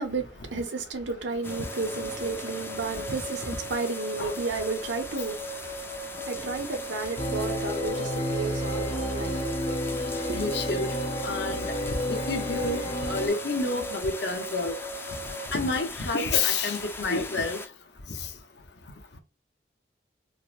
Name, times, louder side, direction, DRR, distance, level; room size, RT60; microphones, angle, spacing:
voice 1, 0.0-9.6 10.3-10.4, right 3 dB, 85° right, 0.9 m, -33 dB
sound 1, 1.4-17.7, left 3 dB, 10° left, 0.4 m, -40 dB
sound 2, 1.5-15.5, right 2 dB, 45° right, 0.7 m, -39 dB
sound 3, 7.2-13.3, equal, 35° left, 0.7 m, -31 dB
voice 2, 10.3-10.9 11.2-11.7 12.1-14.8 15.5-17.6, left 3 dB, 70° left, 0.8 m, -28 dB
4.6 x 2.1 x 2.4 m
head